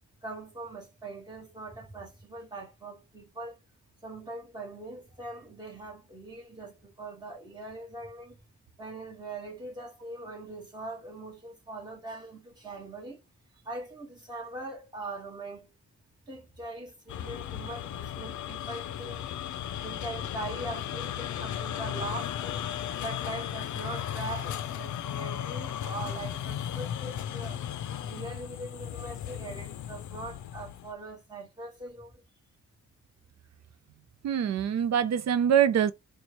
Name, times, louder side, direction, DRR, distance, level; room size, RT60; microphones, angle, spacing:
voice 1, 0.2-3.6 4.0-8.4 8.8-13.2 13.7-15.7 16.3-19.3 19.8-22.6 23.0-27.6 28.0-32.2, right 2 dB, 15° right, 1.7 m, -41 dB
sound 1, 17.1-30.9, left 10 dB, 70° left, 0.5 m, -36 dB
voice 2, 34.2-35.9, right 9 dB, 60° right, 0.5 m, -24 dB
4.3 x 2.3 x 3.0 m
wide cardioid pair, 145°, 30 cm